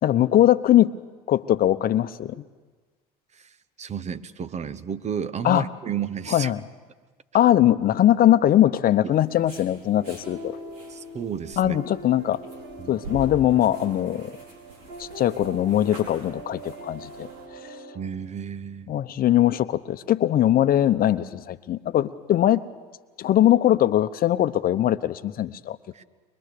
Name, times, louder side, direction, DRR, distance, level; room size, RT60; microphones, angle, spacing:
voice 1, 0.0-0.9 1.3-2.4 5.4-5.7 6.3-6.6 7.3-10.6 11.6-12.4 12.9-14.3 15.0-17.3 18.9-22.6 23.2-25.8, left 12 dB, 45° left, 13 dB, 0.9 m, -21 dB
voice 2, 3.3-6.5 10.9-11.8 12.8-13.0 17.9-18.9 25.9-26.0, right 7 dB, 35° right, 15 dB, 1.0 m, -32 dB
sound 1, 9.1-17.5, right 1 dB, 85° right, 4.5 m, -45 dB
sound 2, 10.0-18.1, right 2 dB, 65° right, 3.0 m, -42 dB
23.5 x 21.5 x 6.8 m, 1.4 s
hypercardioid pair, 75°, 20 cm